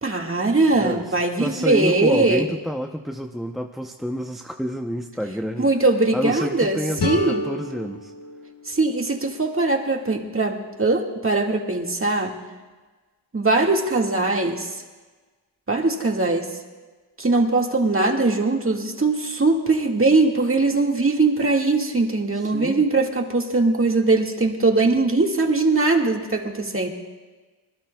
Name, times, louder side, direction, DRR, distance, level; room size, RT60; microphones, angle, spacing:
voice 1, 0.0-2.5 5.6-7.4 8.7-12.4 13.3-14.7 15.7-16.6 17.2-26.9, right 3 dB, 30° right, 2 dB, 1.9 m, -21 dB
voice 2, 0.8-5.7 6.1-8.1 22.3-22.8, equal, ahead, 2 dB, 0.7 m, -29 dB
sound 1, 7.0-9.9, left 1 dB, 60° left, 1.8 m, -30 dB
26.0 x 20.5 x 2.3 m, 1.3 s
wide cardioid pair, 85°, 46 cm